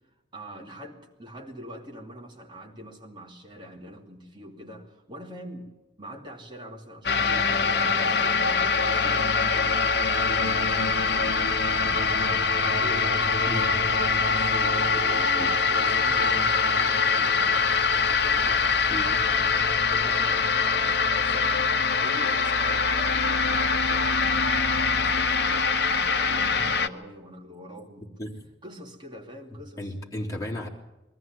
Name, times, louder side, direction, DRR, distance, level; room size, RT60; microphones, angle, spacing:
voice 1, 0.3-5.7 6.0-28.1 28.6-29.9, equal, 25° right, 1 dB, 2.7 m, -44 dB
sound 1, 7.0-26.9, left 4 dB, 65° left, 1.0 m, -23 dB
voice 2, 13.5-13.8 15.4-15.5 18.9-19.2 28.2-28.3 29.8-30.7, left 1 dB, 20° left, -2 dB, 3.6 m, -33 dB
22.0 x 14.5 x 9.1 m, 1.1 s
head